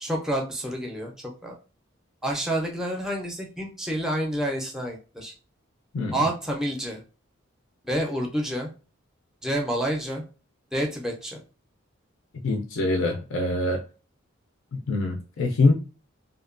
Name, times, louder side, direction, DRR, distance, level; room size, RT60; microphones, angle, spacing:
voice 1, 0.0-1.5 2.2-5.3 6.1-7.0 7.8-8.7 9.4-10.2 10.7-11.4, right 1 dB, ahead, 0.4 m, -28 dB
voice 2, 12.3-13.8 14.7-15.7, left 2 dB, 65° left, 0.4 m, -24 dB
2.7 x 2.2 x 2.4 m
head